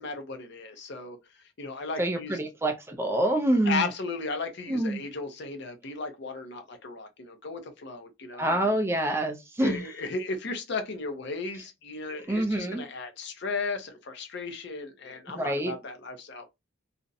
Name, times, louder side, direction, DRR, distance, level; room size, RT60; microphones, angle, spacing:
voice 1, 0.0-2.4 3.7-8.7 9.6-16.5, left 4 dB, 60° left, 0.6 m, -35 dB
voice 2, 2.0-3.9 4.7-5.0 8.4-9.8 12.1-12.8 15.3-15.7, right 1 dB, 15° right, 0.3 m, -26 dB
2.4 x 2.0 x 2.6 m
head